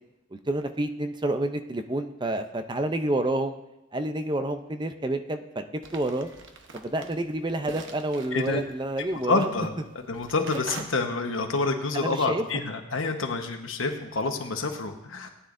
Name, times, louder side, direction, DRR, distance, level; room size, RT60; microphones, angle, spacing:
voice 1, 0.3-3.6 3.9-5.6 5.9-6.3 6.7-9.4 11.9-12.4, right 1 dB, 25° right, 8 dB, 0.6 m, -29 dB
sound 1, 5.8-10.8, right 3 dB, 70° right, 1.0 m, -44 dB
voice 2, 8.3-8.6 9.3-15.3, left 3 dB, 85° left, 5 dB, 1.2 m, -28 dB
18.5 x 9.8 x 2.6 m, 0.93 s
head